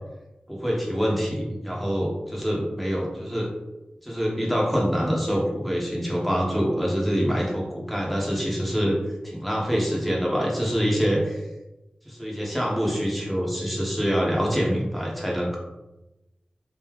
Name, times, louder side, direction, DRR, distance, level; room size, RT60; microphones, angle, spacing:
voice 1, 0.5-3.5 4.0-9.0 9.2-11.4 12.0-15.6, equal, ahead, -3 dB, 1.0 m, -25 dB
3.8 x 2.7 x 3.0 m, 1.0 s
wide cardioid pair, 80°, 3 cm